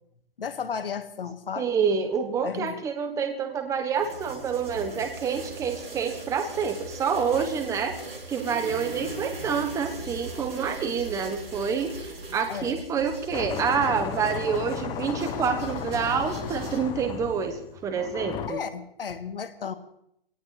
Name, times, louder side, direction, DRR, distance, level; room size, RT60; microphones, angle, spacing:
voice 1, 0.4-1.7 2.4-2.8 7.3-7.5 10.6-10.8 12.5-12.8 18.5-19.7, left 6 dB, 70° left, 10 dB, 1.9 m, -34 dB
voice 2, 1.6-8.0 8.3-18.6, right 6 dB, 10° right, 6 dB, 1.2 m, -27 dB
sound 1, 3.9-16.8, right 2 dB, 85° right, 7.3 m, -40 dB
sound 2, 13.3-18.5, left 8 dB, 15° left, 0.8 m, -35 dB
22.5 x 18.0 x 3.4 m, 0.78 s
hypercardioid pair, 140°, 29 cm